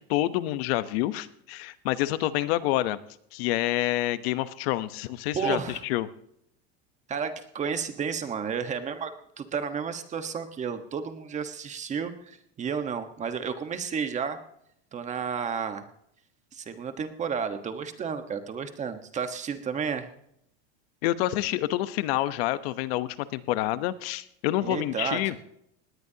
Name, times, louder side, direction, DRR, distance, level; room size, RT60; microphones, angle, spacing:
voice 1, 0.1-3.0 3.3-6.1 21.0-25.3, left 15 dB, 70° left, 13 dB, 1.0 m, -28 dB
voice 2, 5.3-5.8 7.1-14.4 14.9-15.8 16.5-20.1 24.6-25.4, right 6 dB, 20° right, 8 dB, 1.3 m, -32 dB
19.5 x 18.5 x 2.9 m, 0.73 s
supercardioid pair, 155°, 31 cm